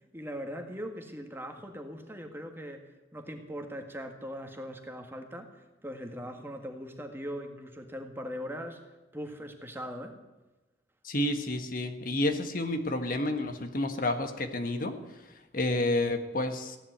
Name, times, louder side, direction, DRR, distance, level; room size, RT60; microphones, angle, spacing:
voice 1, 0.1-2.8 3.1-8.8 9.1-10.1, equal, 15° right, 4 dB, 1.8 m, -40 dB
voice 2, 11.0-15.0 15.5-16.8, left 1 dB, 50° left, 7 dB, 1.5 m, -30 dB
16.0 x 11.0 x 8.1 m, 1.1 s
head